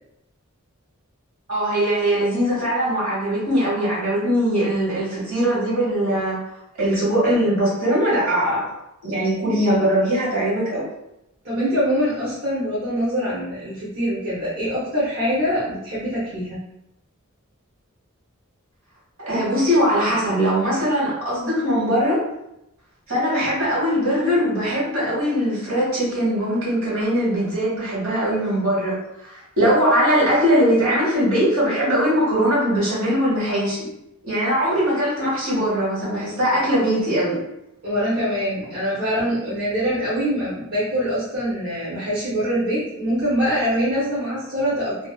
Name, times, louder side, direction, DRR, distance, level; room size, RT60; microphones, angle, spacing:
voice 1, 1.5-6.4 6.7-8.7 9.0-10.8 19.2-22.2 23.1-29.0 29.2-33.9 34.2-37.4, equal, 75° right, -7 dB, 1.4 m, -21 dB
voice 2, 11.4-16.6 37.8-45.1, equal, 50° right, -10 dB, 0.8 m, -24 dB
2.5 x 2.3 x 2.3 m, 0.86 s
head